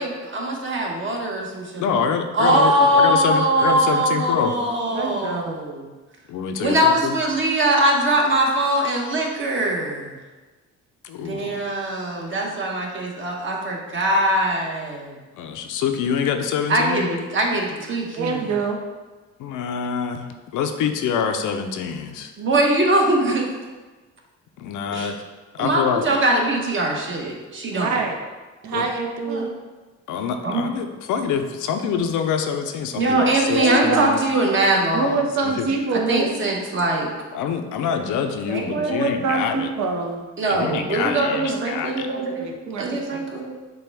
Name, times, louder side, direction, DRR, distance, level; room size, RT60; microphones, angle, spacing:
voice 1, 0.0-1.9 2.3-5.9 6.6-10.1 11.2-15.2 16.7-18.4 22.4-23.4 24.9-25.1 25.6-27.9 29.3-29.4 30.4-30.7 33.0-35.2 35.9-37.1 38.5-39.0 40.4-42.4 42.8-43.5, right 1 dB, 40° right, 0 dB, 1.0 m, -22 dB
voice 2, 1.8-4.6 6.3-7.2 11.0-11.6 15.3-17.1 19.4-22.3 24.6-25.2 25.5-26.1 28.7-28.9 30.1-34.2 35.4-35.7 37.3-39.7 40.5-42.1, left 7 dB, 85° left, 6 dB, 0.5 m, -26 dB
voice 3, 4.9-5.6 18.1-18.8 27.7-28.2 28.6-29.5 33.6-34.0 34.9-36.3 38.9-40.2 41.0-41.1 41.5-41.6 42.3-43.2, right 4 dB, 70° right, 3 dB, 0.7 m, -25 dB
6.7 x 2.2 x 3.4 m, 1.3 s
cardioid pair, 90°, 30 cm